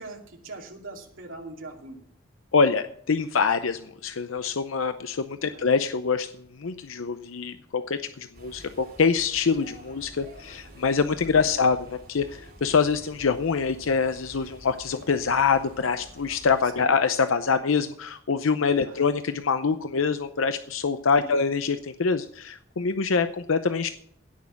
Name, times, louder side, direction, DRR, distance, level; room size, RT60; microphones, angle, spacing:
voice 1, 0.0-2.0 5.4-5.7 11.2-11.6 16.6-16.9 18.8-19.1 21.2-21.3, right 2 dB, 85° right, 1 dB, 2.7 m, -42 dB
voice 2, 2.5-6.3 6.6-23.9, left 5 dB, 85° left, 10 dB, 0.6 m, -25 dB
sound 1, 8.3-16.7, right 1 dB, 50° right, 6.9 m, -48 dB
16.5 x 6.4 x 5.8 m, 0.65 s
head